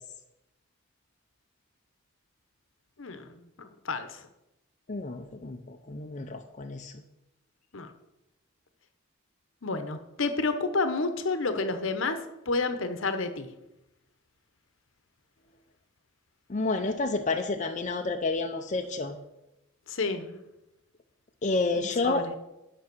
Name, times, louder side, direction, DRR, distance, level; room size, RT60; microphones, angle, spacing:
voice 1, 3.0-4.3 7.7-7.9 9.6-12.2 12.5-13.5 19.9-20.4 21.7-22.4, left 3 dB, 60° left, 9 dB, 0.9 m, -30 dB
voice 2, 4.9-5.6 5.9-6.9 16.5-19.2 21.4-22.3, left 3 dB, 35° left, 5 dB, 0.5 m, -29 dB
9.5 x 6.1 x 6.1 m, 0.93 s
head